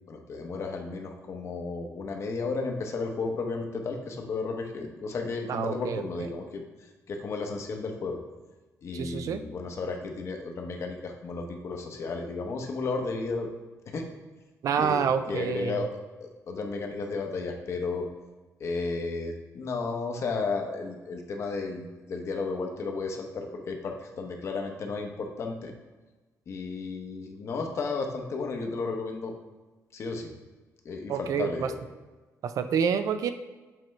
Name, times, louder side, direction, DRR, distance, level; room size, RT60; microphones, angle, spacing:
voice 1, 0.1-8.2 8.8-13.5 13.9-14.1 14.8-18.1 18.6-25.7 26.5-29.3 29.9-30.3 30.8-31.8, left 3 dB, 50° left, 3 dB, 0.8 m, -33 dB
voice 2, 5.5-6.0 8.9-9.4 14.6-15.9 31.1-31.7 32.4-33.3, right 7 dB, 60° right, 10 dB, 0.4 m, -27 dB
7.6 x 4.4 x 3.2 m, 1.2 s
wide cardioid pair, 165°, 6 cm